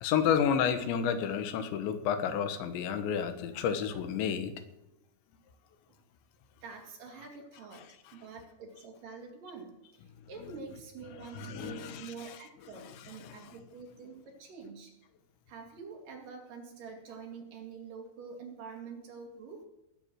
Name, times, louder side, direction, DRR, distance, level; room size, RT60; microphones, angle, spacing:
voice 1, 0.0-4.5 11.2-12.4 13.2-13.4, left 8 dB, 85° left, 9 dB, 3.5 m, -31 dB
voice 2, 6.6-14.9 15.5-19.7, right 5 dB, 55° right, 2 dB, 3.5 m, -46 dB
19.5 x 8.6 x 6.3 m, 0.89 s
omnidirectional pair, 5.0 m